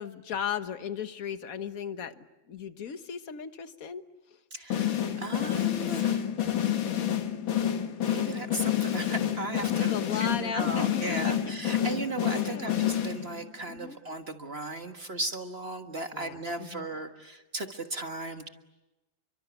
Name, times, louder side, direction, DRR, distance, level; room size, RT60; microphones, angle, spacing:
voice 1, 0.0-4.0 9.7-11.5 12.3-12.8 13.7-14.0 16.1-16.9, left 7 dB, 50° left, 10 dB, 1.5 m, -36 dB
voice 2, 4.5-6.2 8.0-18.5, right 2 dB, 35° right, 6 dB, 1.6 m, -37 dB
sound 1, 4.7-13.5, left 10 dB, 85° left, 2.4 m, -28 dB
29.5 x 24.5 x 8.2 m, 1.0 s
omnidirectional pair, 2.1 m